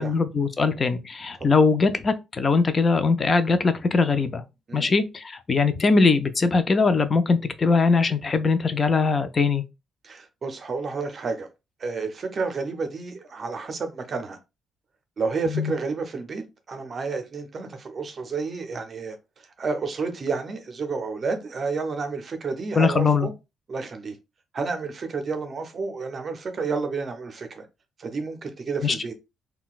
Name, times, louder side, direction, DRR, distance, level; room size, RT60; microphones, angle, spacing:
voice 1, 0.0-4.4 4.7-9.6 15.5-15.7 22.8-23.3 28.8-29.0, left 4 dB, 35° left, 0.4 m, -21 dB
voice 2, 10.0-11.5 11.8-14.4 15.2-19.2 19.6-23.3 23.7-24.2 24.5-27.7 28.0-29.1, right 4 dB, 45° right, 0.6 m, -30 dB
3.7 x 2.2 x 2.4 m
cardioid pair, 90°, 0 cm